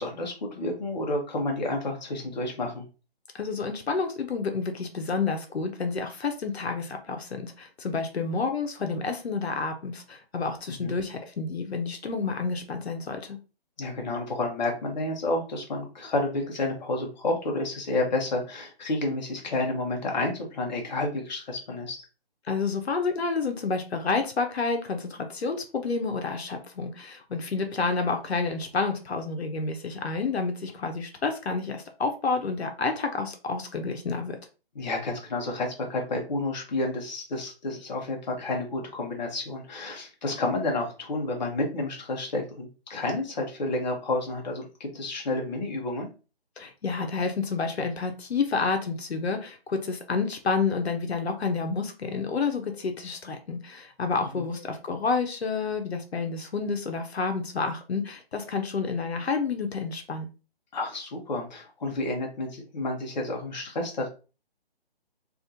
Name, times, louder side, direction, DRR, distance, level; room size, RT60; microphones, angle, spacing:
voice 1, 0.0-2.8 10.8-11.0 13.8-22.0 34.7-46.1 54.3-54.5 60.7-64.1, left 2 dB, 45° left, 1 dB, 0.9 m, -30 dB
voice 2, 3.3-13.4 22.4-34.4 46.6-60.3, left 4 dB, 90° left, 5 dB, 0.8 m, -29 dB
3.5 x 2.4 x 2.7 m, 0.33 s
hypercardioid pair, 160°, 31 cm